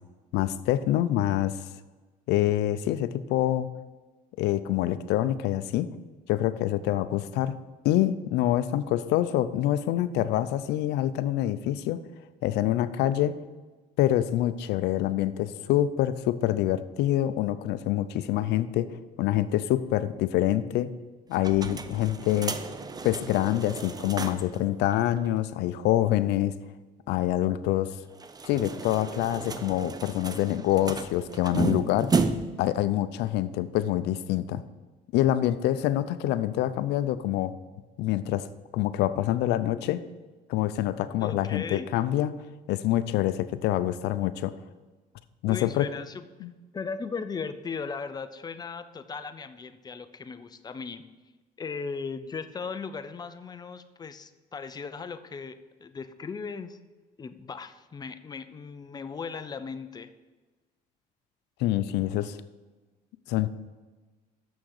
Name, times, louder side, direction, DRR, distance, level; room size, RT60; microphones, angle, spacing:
voice 1, 0.3-1.6 2.3-3.7 4.4-5.9 6.3-7.5 7.8-12.0 12.4-13.4 14.0-18.9 19.2-20.9 21.3-22.6 23.0-26.6 27.1-28.0 28.5-32.1 32.6-34.6 35.1-37.5 38.0-38.5 38.7-40.0 40.5-42.3 42.7-44.5 45.4-45.9 46.4-46.5 61.6-62.4 63.3-63.5, left 13 dB, 85° left, 14 dB, 0.5 m, -26 dB
sound 1, 21.3-24.6 24.9-25.0 25.2-25.3 28.1-32.7, right 4 dB, 25° right, 0.6 m, -33 dB
voice 2, 41.2-41.9 45.5-46.3 46.7-51.0 51.6-56.8 57.2-60.1, left 5 dB, 25° left, 10 dB, 0.6 m, -37 dB
7.0 x 6.2 x 6.5 m, 1.3 s
cardioid pair, 110°, 17 cm